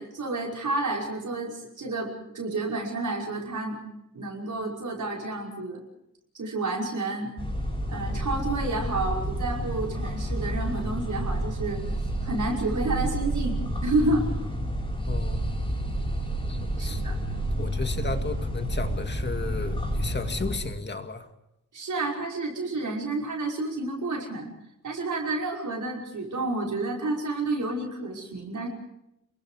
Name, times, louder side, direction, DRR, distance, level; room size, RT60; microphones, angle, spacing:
voice 1, 0.0-3.8 4.1-5.8 6.3-7.3 7.9-11.8 12.2-14.6 16.8-17.1 21.7-24.5 24.8-28.7, right 2 dB, 65° right, -2 dB, 5.7 m, -30 dB
sound 1, 7.4-20.6, right 1 dB, 15° left, 7.4 m, -30 dB
voice 2, 15.1-15.5 16.5-17.0 17.6-21.3, left 4 dB, 35° left, 6 dB, 2.2 m, -34 dB
30.0 x 22.5 x 4.9 m, 0.83 s
wide cardioid pair, 170°, 33 cm